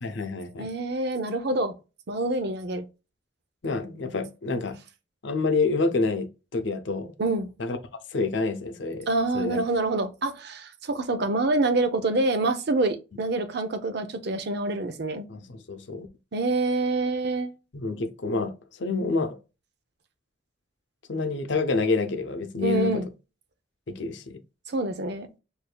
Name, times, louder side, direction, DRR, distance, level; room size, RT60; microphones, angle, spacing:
voice 1, 0.0-0.7 3.6-4.8 5.2-7.1 7.6-7.8 8.1-9.1 9.3-9.6 15.3-16.1 17.7-19.4 21.1-23.0 23.9-24.4, left 3 dB, 65° left, 0.7 m, -28 dB
voice 2, 0.6-1.8 2.1-2.9 7.2-7.5 9.1-15.3 16.3-17.5 22.6-23.1 24.7-25.3, right 2 dB, 55° right, 0.6 m, -26 dB
6.6 x 2.6 x 2.2 m
head